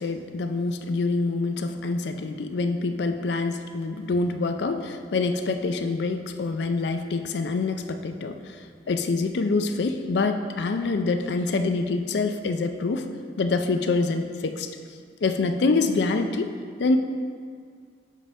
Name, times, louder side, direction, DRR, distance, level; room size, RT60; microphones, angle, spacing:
voice 1, 0.0-8.6 8.9-13.1 13.4-14.7 15.2-16.5 16.8-17.0, left 3 dB, 70° left, 8 dB, 0.4 m, -26 dB
7.3 x 3.6 x 5.4 m, 2.1 s
head